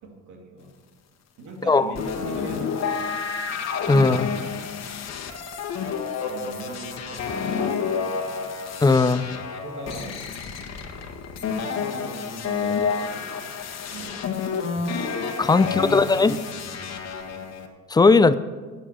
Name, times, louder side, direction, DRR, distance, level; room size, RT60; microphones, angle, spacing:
voice 1, 0.0-0.8 1.4-3.2 6.2-8.5 9.5-10.2 11.4-13.5 13.9-14.3 15.6-16.4, right 2 dB, 65° right, 3 dB, 2.3 m, -40 dB
sound 1, 2.0-17.7, left 6 dB, 55° left, 1.5 m, -30 dB
voice 2, 3.9-4.3 8.8-9.2 15.4-16.4 17.9-18.3, left 3 dB, 15° left, 14 dB, 0.4 m, -17 dB
9.8 x 7.1 x 7.3 m, 1.4 s
supercardioid pair, 85°, 32 cm